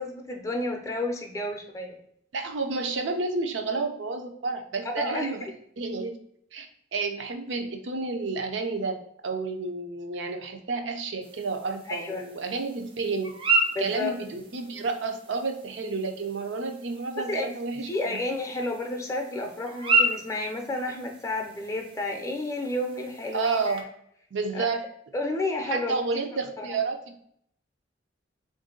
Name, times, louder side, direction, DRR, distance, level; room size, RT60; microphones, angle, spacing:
voice 1, 0.0-2.0 5.0-5.3 11.9-12.2 13.7-14.1 17.3-17.5 17.9-23.8 24.5-24.7 25.1-26.0 26.6-26.7, left 2 dB, 15° left, 3 dB, 0.5 m, -31 dB
voice 2, 2.3-5.4 5.8-6.2 6.5-6.7 6.9-9.0 9.2-13.3 13.8-17.9 23.3-23.8 24.3-24.8 25.6-27.2, right 4 dB, 75° right, 5 dB, 0.6 m, -30 dB
sound 1, 11.2-23.8, right 2 dB, 30° right, 0.5 m, -33 dB
3.6 x 2.6 x 3.7 m, 0.71 s
head